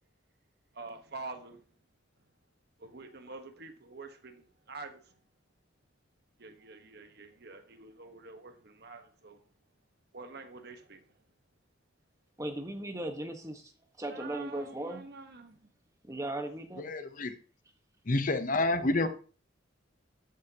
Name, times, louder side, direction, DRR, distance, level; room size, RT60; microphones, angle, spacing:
voice 1, 0.7-1.6 2.8-5.1 6.4-9.4 10.1-11.0 14.1-15.7, right 3 dB, 55° right, 1.3 m, -47 dB
voice 2, 12.4-13.7 14.0-15.0 16.0-16.9, right 1 dB, 15° right, 1.3 m, -37 dB
voice 3, 16.8-17.3 18.1-19.1, left 2 dB, 45° left, 0.8 m, -28 dB
13.0 x 9.2 x 2.9 m
head